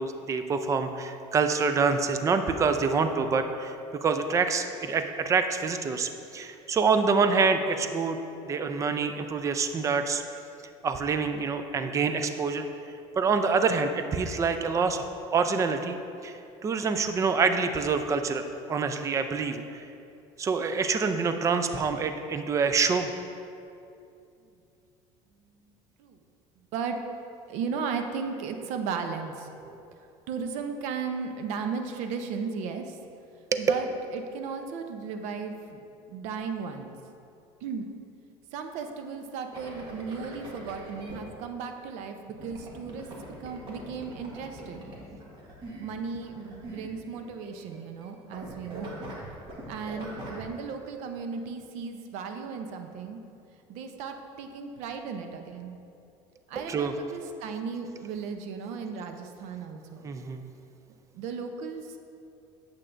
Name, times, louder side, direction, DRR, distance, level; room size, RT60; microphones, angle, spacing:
voice 1, 0.0-8.2 8.4-10.2 10.8-12.7 13.2-15.0 15.3-16.0 16.2-19.9 20.4-23.1 29.6-29.8 56.5-56.9 60.0-60.4, right 5 dB, 25° right, 8 dB, 0.4 m, -26 dB
voice 2, 27.5-29.5 30.3-33.0 33.6-35.8 36.1-37.0 37.6-37.9 38.5-43.1 43.4-44.8 45.8-49.0 49.7-53.2 53.7-55.8 56.5-60.1 61.1-62.0, right 5 dB, 65° right, 6 dB, 0.7 m, -35 dB
sound 1, 39.5-41.2 42.4-47.5 47.7-48.1 48.3-50.5, right 1 dB, 40° right, 1.5 m, -42 dB
8.7 x 7.2 x 2.5 m, 2.6 s
cardioid pair, 125°, 13 cm